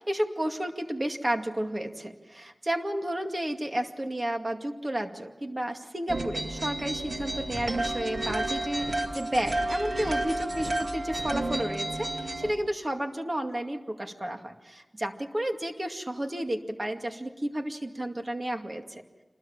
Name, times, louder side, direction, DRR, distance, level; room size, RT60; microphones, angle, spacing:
voice 1, 0.0-19.0, right 1 dB, 35° right, 4 dB, 2.3 m, -32 dB
sound 1, 6.1-12.5, right 1 dB, 70° right, 2.2 m, -31 dB
27.0 x 21.0 x 7.3 m, 1.2 s
wide cardioid pair, 60°, 0 cm